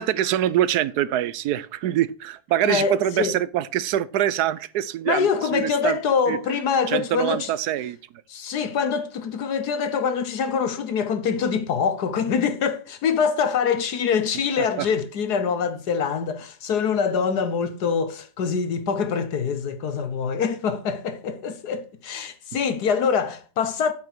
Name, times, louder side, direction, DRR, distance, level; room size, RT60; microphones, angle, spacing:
voice 1, 0.0-6.0 6.3-6.4 6.9-8.0 14.8-14.9, right 12 dB, 85° right, 1.2 m, -24 dB
voice 2, 2.7-3.4 5.1-7.5 8.3-23.9, left 6 dB, 90° left, 1.7 m, -24 dB
8.7 x 6.0 x 6.0 m
omnidirectional pair, 1.7 m